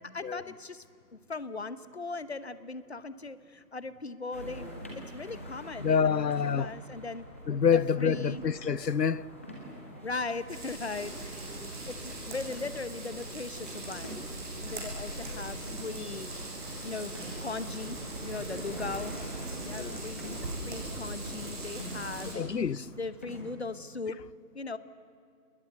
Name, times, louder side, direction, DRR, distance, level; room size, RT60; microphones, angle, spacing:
voice 1, 0.1-0.8 1.1-7.2 7.6-8.5 10.0-11.5 11.9-14.2 14.6-16.3 16.8-19.1 19.7-20.3 20.6-22.4 23.0-24.2 24.5-24.8, left 3 dB, 40° left, 1.0 m, -39 dB
sound 1, 4.3-23.4, equal, 10° left, 1.1 m, -45 dB
voice 2, 5.8-6.7 7.5-9.2 15.3-15.4 19.8-20.0 22.3-22.8, left 6 dB, 90° left, 0.7 m, -27 dB
sound 2, 10.5-22.3, right 2 dB, 30° right, 6.1 m, -40 dB
sound 3, 11.2-17.3, right 1 dB, 70° right, 6.2 m, -51 dB
28.0 x 21.0 x 8.1 m
figure-of-eight pair, 160°, 48 cm